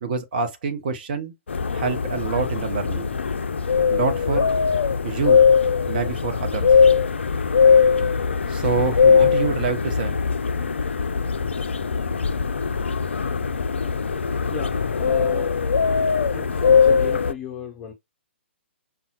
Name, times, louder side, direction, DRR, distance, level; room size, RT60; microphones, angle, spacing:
voice 1, 0.0-1.3 1.7-3.2 3.9-4.5 5.0-5.4 5.9-6.7 8.5-10.2, right 5 dB, 45° right, 0.8 m, -26 dB
sound 1, 1.5-17.3, left 6 dB, 70° left, 0.3 m, -20 dB
voice 2, 14.5-15.6 16.3-17.9, left 6 dB, 20° left, 0.6 m, -36 dB
5.4 x 2.2 x 2.8 m
figure-of-eight pair, 125°, 7 cm